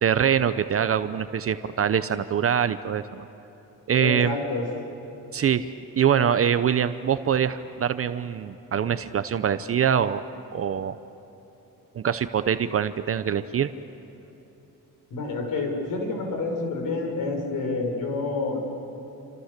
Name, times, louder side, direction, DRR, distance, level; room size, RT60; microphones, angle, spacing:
voice 1, 0.0-3.0 3.9-4.4 5.3-10.2 10.5-11.0 11.9-13.7, right 8 dB, 45° right, 12 dB, 0.7 m, -24 dB
voice 2, 4.0-4.7 15.1-18.6, left 3 dB, 75° left, 3 dB, 5.4 m, -28 dB
28.5 x 26.0 x 6.7 m, 3.0 s
cardioid pair, 115°, 33 cm